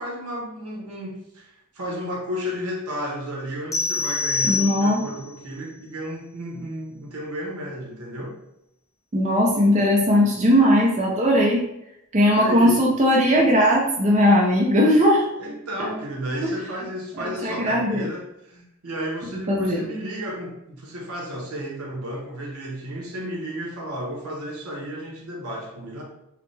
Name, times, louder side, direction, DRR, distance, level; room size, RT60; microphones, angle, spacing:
voice 1, 0.0-8.4 12.4-12.9 15.4-26.0, equal, 80° right, -1 dB, 1.0 m, -33 dB
sound 1, 3.7-5.2, left 4 dB, 15° left, 0.4 m, -26 dB
voice 2, 4.4-5.0 9.1-11.6 12.1-15.3 16.4-16.5 17.2-18.1 19.5-19.8, equal, 35° right, -2 dB, 0.6 m, -19 dB
4.7 x 2.1 x 3.3 m, 0.81 s
head